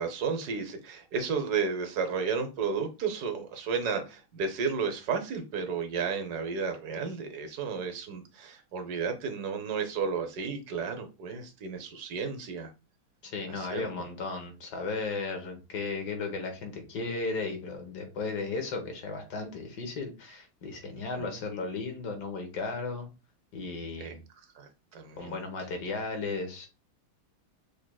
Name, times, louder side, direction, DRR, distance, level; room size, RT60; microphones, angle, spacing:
voice 1, 0.0-12.7 13.5-14.0 20.9-21.4 24.0-25.4, right 5 dB, 60° right, 6 dB, 1.1 m, -33 dB
voice 2, 13.2-23.1 23.5-24.2 25.2-26.7, left 3 dB, 55° left, 4 dB, 1.6 m, -35 dB
6.6 x 3.3 x 2.3 m, 0.29 s
omnidirectional pair, 2.3 m